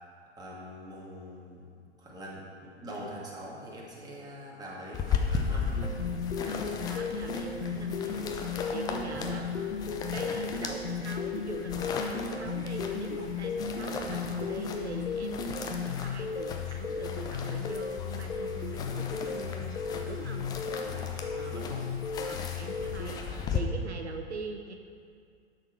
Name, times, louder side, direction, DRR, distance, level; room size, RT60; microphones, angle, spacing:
voice 1, 0.4-6.0 7.4-7.6 9.1-9.5 14.1-14.3 20.8-21.2 21.5-21.9 23.1-23.5, equal, 10° right, -4 dB, 1.9 m, -44 dB
sound 1, 4.9-23.6, left 6 dB, 10° left, 0.4 m, -37 dB
sound 2, 5.8-23.1, left 6 dB, 75° left, 0.9 m, -35 dB
voice 2, 6.4-9.4 10.1-19.8 20.0-20.5 21.3-21.7 22.2-23.2 23.5-24.7, right 4 dB, 75° right, 4 dB, 0.9 m, -42 dB
11.5 x 6.4 x 4.5 m, 2.2 s
figure-of-eight pair, 105°, 34 cm